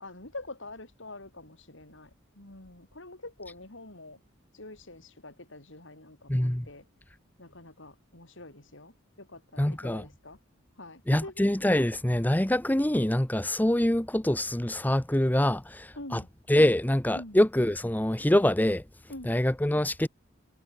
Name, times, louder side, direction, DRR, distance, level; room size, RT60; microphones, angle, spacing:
voice 1, 0.0-4.2 4.5-6.8 7.4-10.4 10.8-11.4 16.0-16.3 17.1-17.4 19.1-19.4, left 2 dB, 65° left, 5.8 m, -45 dB
voice 2, 6.3-6.6 9.6-10.0 11.1-16.2 16.5-18.8 19.3-20.1, left 1 dB, 10° left, 0.8 m, -25 dB
head